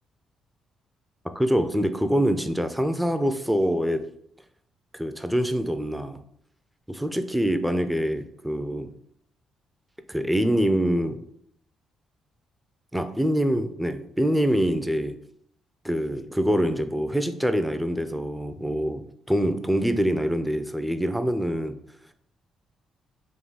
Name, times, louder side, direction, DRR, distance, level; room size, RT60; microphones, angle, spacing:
voice 1, 1.4-4.0 4.9-6.2 6.9-8.9 10.1-11.2 12.9-15.2 15.8-21.8, equal, 5° right, 9 dB, 0.4 m, -25 dB
3.6 x 2.7 x 4.0 m, 0.68 s
cardioid pair, 90°, 0 cm